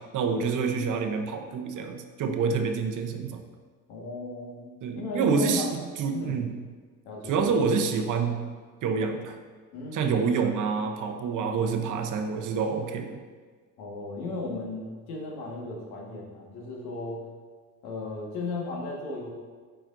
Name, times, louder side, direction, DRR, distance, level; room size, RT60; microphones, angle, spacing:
voice 1, 0.0-3.4 4.8-6.5 7.3-8.4 8.8-9.4 9.9-13.2, right 5 dB, 55° right, 5 dB, 0.8 m, -27 dB
voice 2, 3.9-5.8 6.1-6.4 7.0-7.5 9.7-10.2 13.8-17.3 17.8-19.3, left 2 dB, 80° left, -2 dB, 1.6 m, -36 dB
9.0 x 5.0 x 2.6 m, 1.5 s
cardioid pair, 110°, 37 cm